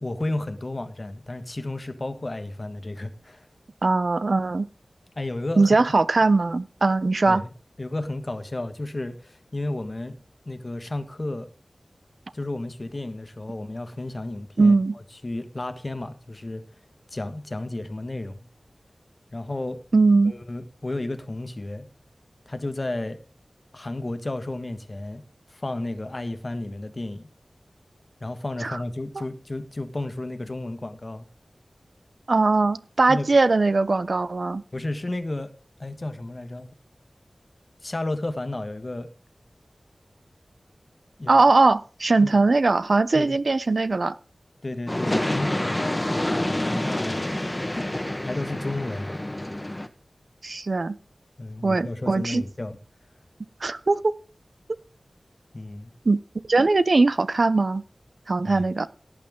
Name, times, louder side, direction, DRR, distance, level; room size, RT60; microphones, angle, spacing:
voice 1, 0.0-3.5 5.1-5.8 7.3-7.5 7.8-11.5 12.3-14.7 15.2-16.6 17.1-18.5 19.3-19.8 20.2-21.9 22.5-23.2 23.7-27.3 28.2-31.3 33.1-33.3 34.7-35.5 35.8-36.7 37.8-39.1 41.2-41.3 42.2-42.4 43.1-43.4 44.6-47.9 48.2-49.2 51.4-52.8 55.5-55.9 58.4-58.6, left 2 dB, 40° left, 9 dB, 1.5 m, -32 dB
voice 2, 3.8-4.7 5.6-7.4 14.6-15.0 19.9-20.3 28.6-28.8 32.3-34.6 41.3-44.1 50.4-51.0 51.6-52.4 53.6-54.1 56.1-56.2 56.5-57.8 58.3-58.9, right 3 dB, 60° right, 15 dB, 0.6 m, -20 dB
sound 1, 44.9-49.9, left 1 dB, 20° left, 1.2 m, -27 dB
17.5 x 8.8 x 3.7 m, 0.38 s
wide cardioid pair, 70°, 0 cm